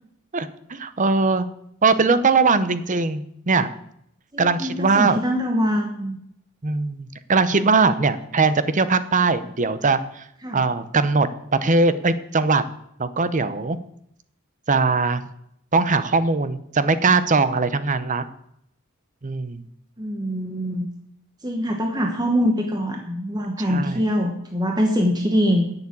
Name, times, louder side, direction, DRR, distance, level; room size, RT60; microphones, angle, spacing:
voice 1, 0.3-1.5 1.8-3.7 4.4-5.2 6.6-10.2 10.5-12.6 13.0-13.8 14.7-15.2 15.7-18.2 19.2-19.6 23.7-24.0, right 4 dB, 35° right, 13 dB, 0.8 m, -20 dB
voice 2, 4.3-6.2 10.4-10.6 20.0-20.9 21.4-25.7, equal, 20° right, 2 dB, 1.2 m, -23 dB
10.5 x 7.2 x 8.6 m, 0.73 s
head